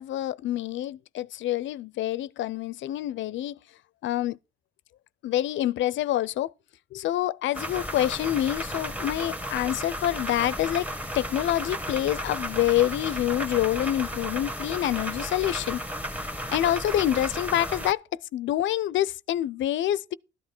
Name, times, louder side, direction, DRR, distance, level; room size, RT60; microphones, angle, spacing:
voice 1, 0.0-3.6 4.0-4.4 5.2-6.5 6.9-10.9 11.1-15.8 16.5-20.1, left 13 dB, 70° left, 0.5 m, -27 dB
sound 1, 7.5-17.9, equal, 5° right, 1.2 m, -34 dB
13.5 x 9.5 x 4.4 m
cardioid pair, 90°, 20 cm